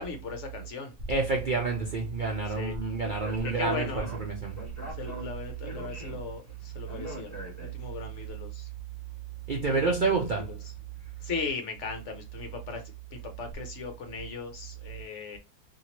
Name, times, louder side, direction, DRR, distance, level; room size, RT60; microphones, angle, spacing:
voice 1, 0.0-0.9 2.4-2.8 3.4-4.1 4.9-8.7 9.7-10.7 11.2-12.8 13.1-15.4, left 4 dB, 60° left, 0.9 m, -38 dB
voice 2, 1.1-4.0 4.4-4.6 9.5-10.5, right 3 dB, 55° right, 0.5 m, -28 dB
Speech, 3.0-8.1, left 1 dB, 15° left, 0.7 m, -43 dB
2.8 x 2.7 x 2.8 m
omnidirectional pair, 1.6 m